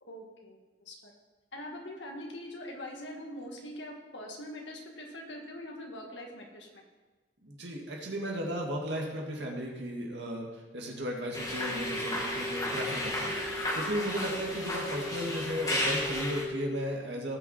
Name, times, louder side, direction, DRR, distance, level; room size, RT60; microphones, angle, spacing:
voice 1, 0.0-0.6 0.9-1.1 1.5-6.8, left 1 dB, 85° left, 1 dB, 2.0 m, -43 dB
voice 2, 7.4-17.4, equal, 75° right, 0 dB, 2.1 m, -35 dB
sound 1, 11.3-16.4, left 1 dB, 20° left, 1.7 m, -33 dB
sound 2, 11.7-16.9, equal, 35° right, 3.2 m, -40 dB
18.0 x 6.1 x 4.4 m, 1.2 s
head